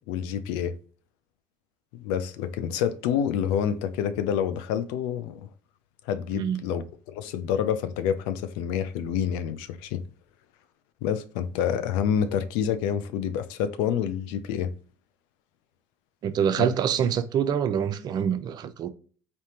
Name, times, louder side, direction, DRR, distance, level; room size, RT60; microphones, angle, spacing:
voice 1, 0.1-0.8 1.9-5.4 6.1-10.0 11.0-14.7 16.6-16.7, left 8 dB, 75° left, 0.4 m, -28 dB
voice 2, 16.2-18.9, right 8 dB, 50° right, 0.5 m, -25 dB
3.4 x 2.8 x 2.8 m
hypercardioid pair, 70°, 9 cm